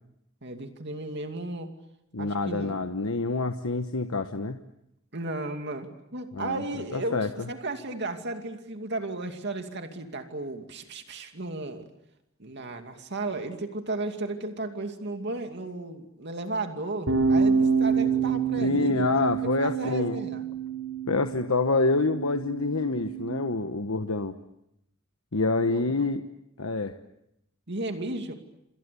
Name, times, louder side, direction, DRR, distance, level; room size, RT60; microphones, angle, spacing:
voice 1, 0.4-1.7 2.2-2.8 5.1-7.2 7.5-11.9 12.4-20.4 25.7-25.8 27.7-28.3, right 2 dB, 55° right, 5 dB, 2.5 m, -34 dB
voice 2, 2.1-4.6 6.3-6.6 6.9-7.5 18.6-20.2 21.1-24.4 25.3-26.2 26.6-26.9, left 3 dB, 85° left, 7 dB, 1.2 m, -27 dB
sound 1, 17.1-23.3, right 5 dB, 80° right, 5.6 m, -27 dB
28.0 x 27.5 x 7.0 m, 0.83 s
head